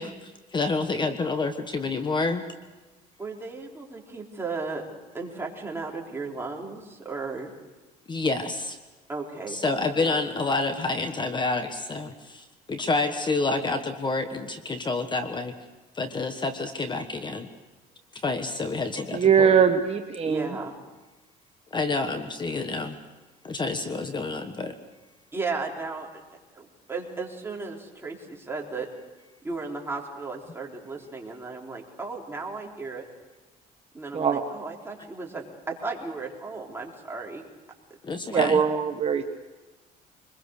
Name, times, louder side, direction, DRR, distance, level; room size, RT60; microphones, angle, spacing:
voice 1, 0.0-2.4 8.1-8.8 9.5-15.6 15.9-17.5 18.1-19.5 21.7-23.0 23.4-24.7 38.0-38.6, left 3 dB, 25° left, 8 dB, 1.4 m, -28 dB
voice 2, 3.2-4.8 5.1-7.5 9.1-10.2 20.3-20.8 25.3-26.1 26.5-28.9 29.4-33.1 33.9-37.4 38.3-38.5, right 3 dB, 15° right, -1 dB, 4.0 m, -35 dB
voice 3, 19.1-20.6 34.1-34.4 38.3-39.2, right 7 dB, 35° right, 5 dB, 1.3 m, -21 dB
24.0 x 21.5 x 6.6 m, 1.2 s
cardioid pair, 110°, 17 cm